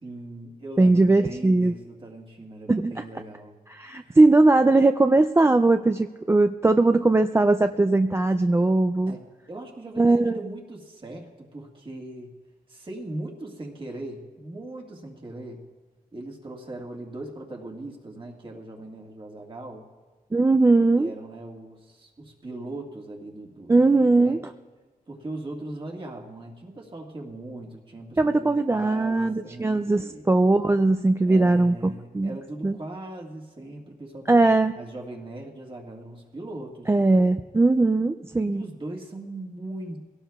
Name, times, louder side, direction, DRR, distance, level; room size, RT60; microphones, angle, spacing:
voice 1, 0.0-3.6 4.0-4.2 9.1-12.3 12.7-15.6 16.1-19.9 20.9-24.4 25.1-30.3 31.2-34.4 34.7-37.3 38.4-40.0, right 2 dB, 35° right, 0 dB, 1.7 m, -39 dB
voice 2, 0.8-1.7 2.7-2.9 3.8-9.1 10.0-10.4 20.3-21.1 23.7-24.4 28.2-32.3 32.6-32.8 34.3-34.7 36.9-38.6, right 2 dB, 15° right, 7 dB, 0.3 m, -20 dB
23.0 x 17.5 x 2.3 m, 1.4 s
wide cardioid pair, 155°, 15 cm